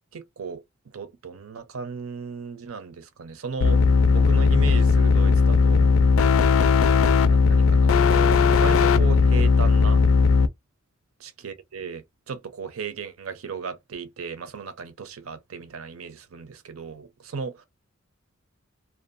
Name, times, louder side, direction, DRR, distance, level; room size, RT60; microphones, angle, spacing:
voice 1, 0.1-0.6 0.9-3.8 4.1-6.0 7.2-10.0 11.2-17.6, right 5 dB, 90° right, 0.6 m, -35 dB
sound 1, 3.6-10.5, left 5 dB, 70° left, 0.4 m, -18 dB
2.6 x 2.2 x 2.5 m
head